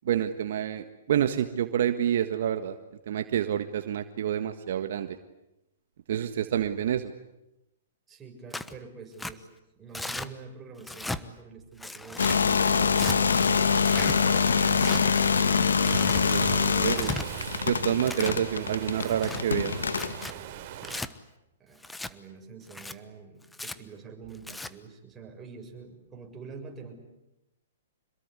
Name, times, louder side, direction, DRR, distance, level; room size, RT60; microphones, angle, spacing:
voice 1, 0.0-2.7 3.1-5.1 6.1-7.1 16.2-16.4 16.8-17.1 17.6-19.8, right 10 dB, 65° right, 8 dB, 1.6 m, -28 dB
voice 2, 8.1-9.5 9.8-15.3 21.6-26.9, right 5 dB, 15° right, 1 dB, 7.1 m, -46 dB
Tearing, 8.5-8.7 9.2-9.3 9.9-10.3 10.8-11.2 11.8-12.4 12.9-13.2 13.8-14.2 14.7-15.0 15.7-16.2 16.8-17.3 17.8-18.4 18.9-19.4 19.9-20.3 20.8-21.1 21.8-22.1 22.7-22.9 23.5-23.8 24.3-24.7, left 2 dB, 5° left, 1.2 m, -36 dB
sound 1, 12.2-20.3, left 6 dB, 85° left, 1.7 m, -24 dB
Waves surf, 12.2-21.0, right 10 dB, 45° right, 3.5 m, -38 dB
27.0 x 22.0 x 9.8 m, 0.90 s
hypercardioid pair, 130°, 0 cm